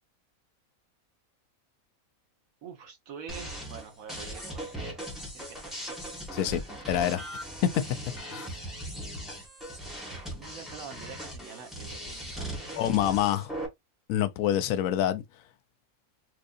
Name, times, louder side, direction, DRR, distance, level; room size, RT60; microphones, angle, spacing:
voice 1, 2.6-4.7 5.3-5.8 6.5-6.9 10.3-13.3, right 6 dB, 80° right, 1.3 m, -46 dB
sound 1, 3.3-13.7, right 1 dB, ahead, 1.2 m, -39 dB
voice 2, 6.9-7.2 8.3-8.5 12.7-13.4 14.1-15.2, left 11 dB, 80° left, 1.0 m, -26 dB
4.6 x 2.5 x 2.5 m
omnidirectional pair, 1.5 m